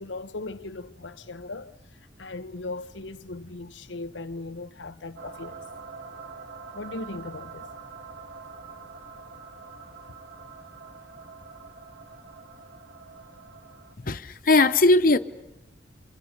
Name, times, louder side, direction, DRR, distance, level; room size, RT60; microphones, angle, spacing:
voice 1, 0.0-1.7 2.2-5.6 6.7-7.7, left 2 dB, 85° left, 1.0 m, -38 dB
sound 1, 5.2-14.0, right 4 dB, 75° right, 2.1 m, -45 dB
voice 2, 14.0-15.2, left 2 dB, 50° left, 0.9 m, -19 dB
28.5 x 26.5 x 6.7 m
head